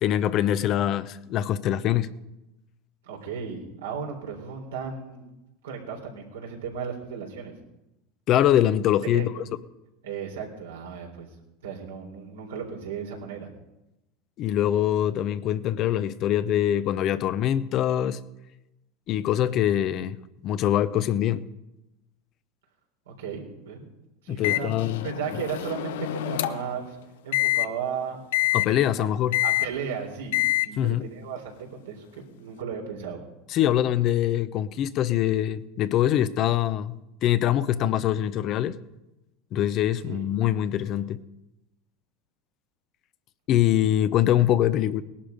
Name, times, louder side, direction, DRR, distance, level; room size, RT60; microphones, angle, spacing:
voice 1, 0.0-2.1 8.3-9.3 14.4-18.2 19.1-20.2 20.4-21.4 24.3-25.1 28.5-29.4 30.8-31.0 33.5-36.9 37.2-38.8 39.5-41.2 43.5-45.0, left 11 dB, 50° left, 13 dB, 0.9 m, -23 dB
voice 2, 3.0-5.2 5.6-7.5 9.0-9.3 10.0-11.3 11.6-13.5 23.1-23.9 24.2-24.7 25.0-27.0 27.2-28.2 29.0-29.1 29.4-33.2 40.0-40.2, right 7 dB, 85° right, 0 dB, 3.8 m, -35 dB
Microwave oven, 24.4-26.8 27.3-27.7 28.3-28.7 29.3-29.7 30.3-30.7, left 18 dB, 75° left, 0.6 m, -26 dB
18.5 x 11.5 x 5.2 m, 0.94 s
hypercardioid pair, 95°, 0 cm